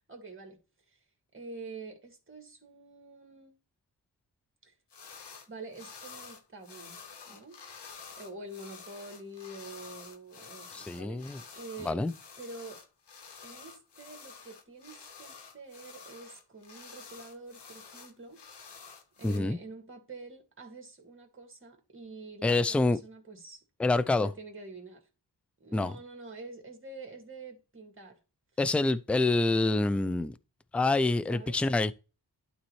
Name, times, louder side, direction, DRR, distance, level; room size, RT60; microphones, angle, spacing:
voice 1, 0.1-0.6 0.9-1.0 1.3-3.6 4.6-4.7 5.5-7.0 7.3-7.6 8.2-11.2 11.5-12.0 12.4-12.8 13.4-18.7 19.2-23.6 24.2-25.0 25.6-28.2 31.3-31.7, right 3 dB, 30° right, 2.0 m, -46 dB
sound 1, 4.9-5.5 5.7-19.4, left 5 dB, 80° left, 1.2 m, -49 dB
voice 2, 10.7-11.4 11.8-12.1 19.2-19.6 22.4-23.0 23.8-24.3 25.7-25.9 28.6-30.3 30.7-31.9, left 2 dB, 5° left, 0.3 m, -26 dB
11.5 x 4.1 x 3.1 m
wide cardioid pair, 80°, 41 cm